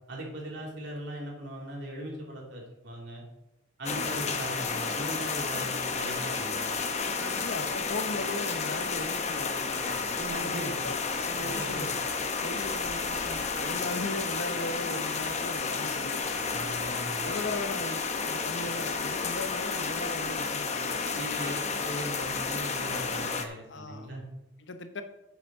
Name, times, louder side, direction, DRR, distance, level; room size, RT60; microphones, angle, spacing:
voice 1, 0.1-3.2 3.8-6.7 10.2-10.8 11.4-11.9 16.5-17.4 21.1-24.2, right 1 dB, 60° right, -2 dB, 3.3 m, -39 dB
sound 1, 3.8-23.4, left 4 dB, 35° left, 0.9 m, -31 dB
voice 2, 3.9-4.3 7.2-10.0 10.4-12.0 12.4-16.2 16.8-21.2 23.7-24.1 24.6-25.0, left 2 dB, 60° left, 8 dB, 1.0 m, -38 dB
8.1 x 7.3 x 6.7 m, 0.91 s
head